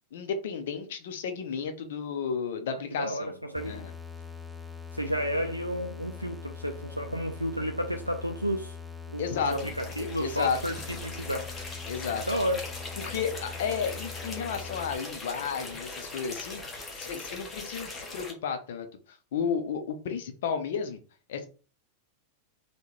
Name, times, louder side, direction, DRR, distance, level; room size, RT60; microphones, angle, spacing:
voice 1, 0.1-3.3 3.6-3.9 9.2-9.5 10.0-10.6 11.9-12.2 13.0-16.6 17.0-18.9 19.3-21.0 21.3-21.5, left 6 dB, 55° left, 0.5 m, -32 dB
voice 2, 2.7-3.8 4.9-8.8 9.1-11.5 12.3-12.7, equal, 90° right, 0.3 m, -32 dB
sound 1, 3.6-15.0, left 6 dB, 5° right, 0.4 m, -42 dB
sound 2, 9.4-18.3, left 3 dB, 15° left, 0.9 m, -40 dB
3.6 x 2.2 x 3.0 m
figure-of-eight pair, 90°, 0 cm